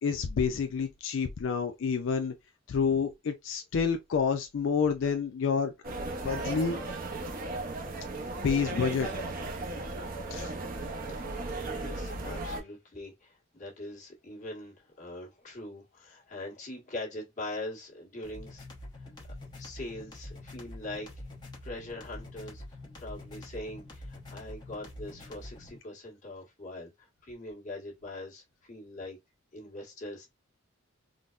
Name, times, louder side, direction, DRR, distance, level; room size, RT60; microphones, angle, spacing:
voice 1, 0.0-2.3 2.7-5.7 6.2-6.8 8.4-9.1 10.3-10.5, left 6 dB, 70° left, 0.4 m, -28 dB
sound 1, 5.8-12.6, right 2 dB, 45° right, 0.6 m, -36 dB
voice 2, 11.5-18.7 19.0-19.1 19.6-21.1 21.6-29.2 29.5-30.3, left 2 dB, 40° left, 1.3 m, -42 dB
sound 2, 18.2-25.8, left 1 dB, 20° left, 0.8 m, -45 dB
3.8 x 2.0 x 2.3 m
head